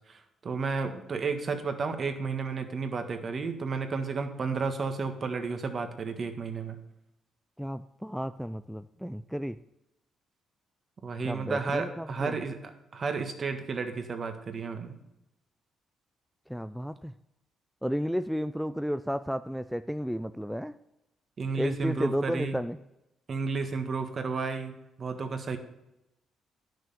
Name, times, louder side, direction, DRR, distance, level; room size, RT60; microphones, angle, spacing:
voice 1, 0.1-6.8 11.0-14.9 21.4-22.6 23.3-25.6, right 4 dB, 45° right, 7 dB, 1.5 m, -32 dB
voice 2, 7.6-9.6 11.2-12.3 16.5-17.1 17.8-20.7 21.6-22.8, equal, ahead, 11 dB, 0.4 m, -32 dB
11.0 x 6.4 x 6.8 m, 0.90 s
cardioid pair, 90°, 0 cm